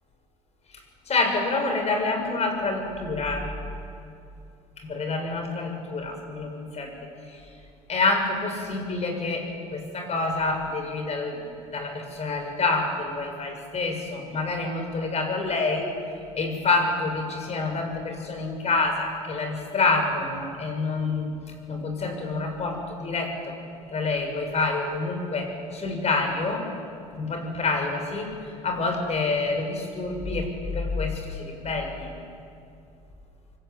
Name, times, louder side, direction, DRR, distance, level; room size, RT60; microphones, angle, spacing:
voice 1, 1.1-3.5 4.8-6.9 7.2-7.4 7.9-15.9 16.3-21.3 21.7-23.5 23.9-26.7 27.1-28.3 28.6-32.1, left 3 dB, 35° left, 4 dB, 7.0 m, -27 dB
25.5 x 24.0 x 9.5 m, 2.5 s
hypercardioid pair, 70°, 18 cm